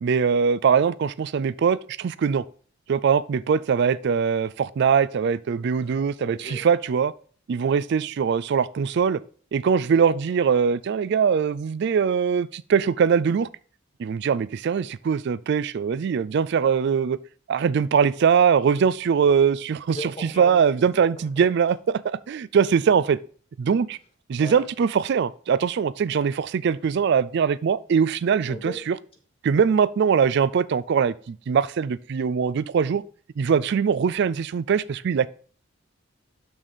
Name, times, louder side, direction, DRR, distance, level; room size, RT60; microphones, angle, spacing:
voice 1, 0.0-2.4 2.9-7.1 7.5-9.2 9.5-13.5 14.0-17.2 17.5-23.2 23.6-24.0 24.3-29.0 29.4-33.0 33.4-35.3, right 6 dB, 55° right, 0.3 m, -22 dB
voice 2, 6.0-6.7 19.9-20.8 21.2-21.5 24.4-24.7 28.5-28.8, left 1 dB, 30° left, 1.9 m, -37 dB
6.8 x 6.2 x 4.1 m
head